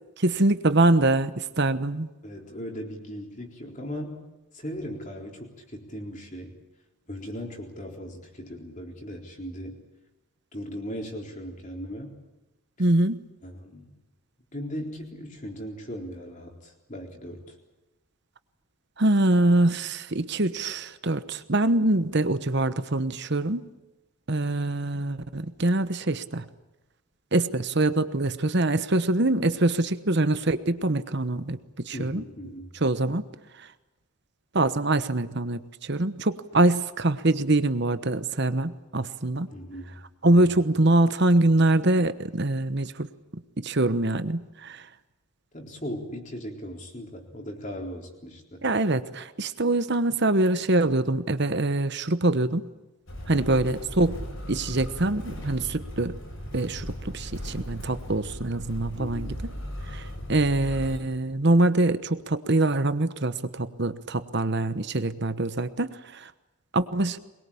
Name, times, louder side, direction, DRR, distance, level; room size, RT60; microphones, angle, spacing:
voice 1, 0.2-2.1 12.8-13.2 19.0-23.6 24.3-26.4 27.3-31.6 31.8-32.2 32.8-33.2 34.5-39.5 40.2-43.1 43.6-44.8 48.6-52.6 53.3-54.2 54.5-56.2 56.5-59.3 59.9-60.0 60.3-66.3 66.7-67.2, right 2 dB, 50° right, 12 dB, 1.1 m, -24 dB
voice 2, 2.2-4.3 4.5-6.6 7.1-9.8 10.5-12.2 13.4-13.9 14.5-17.6 31.9-32.8 39.5-40.0 40.2-40.5 45.5-48.6 53.3-53.6 59.0-59.4, equal, 35° left, 2 dB, 4.0 m, -38 dB
Motor vehicle (road), 53.1-61.0, equal, 65° left, 7.9 m, -37 dB
23.0 x 21.5 x 8.7 m, 1.0 s
head